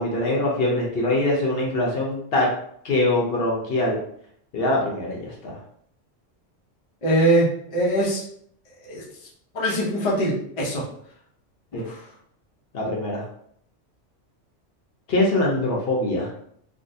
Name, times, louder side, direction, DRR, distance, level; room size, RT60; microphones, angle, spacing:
voice 1, 0.0-2.5 2.8-4.0 4.5-5.6 11.7-11.9 12.7-13.2 15.1-16.3, left 1 dB, 60° left, -2 dB, 0.9 m, -23 dB
voice 2, 7.0-8.2 8.8-9.1 9.5-10.9 11.7-12.0, right 1 dB, 35° left, -4 dB, 0.6 m, -22 dB
3.4 x 2.3 x 2.6 m, 0.66 s
omnidirectional pair, 1.2 m